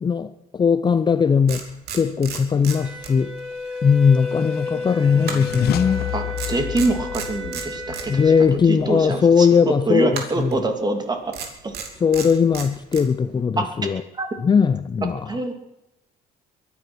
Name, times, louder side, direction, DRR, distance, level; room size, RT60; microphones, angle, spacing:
voice 1, 0.0-1.6 1.9-3.3 3.8-6.1 8.1-10.5 12.0-14.0 14.4-15.2, left 6 dB, 25° left, 0.6 m, -19 dB
sound 1, 1.0-1.1 1.5-3.5 3.8-4.0 5.2-6.1 6.4-8.1 10.1-10.6 11.3-13.1, right 6 dB, 70° right, 2.9 m, -34 dB
Wind instrument woodwind instrument, 2.7-8.4, left 3 dB, ahead, 5.3 m, -32 dB
sound 2, 3.6-9.2, left 14 dB, 65° left, 0.7 m, -32 dB
voice 2, 4.7-5.4 6.1-8.3 8.7-11.2 11.6-11.7 13.6-13.7 14.1-14.3 15.3-15.5, right 2 dB, 25° right, 2.6 m, -25 dB
22.5 x 9.8 x 6.2 m
cardioid pair, 110°, 17 cm